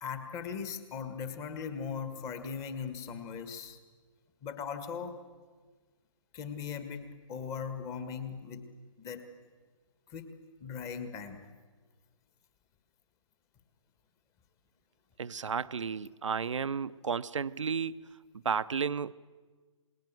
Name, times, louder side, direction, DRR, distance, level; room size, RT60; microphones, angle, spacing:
voice 1, 0.0-3.8 4.4-5.1 6.3-8.6 9.0-9.2 10.1-10.3 10.6-11.4, left 6 dB, 20° left, 9 dB, 1.8 m, -39 dB
voice 2, 15.2-18.1 18.3-19.1, right 6 dB, 65° right, 15 dB, 0.7 m, -33 dB
27.0 x 20.5 x 7.6 m, 1.4 s
figure-of-eight pair, 140°, 17 cm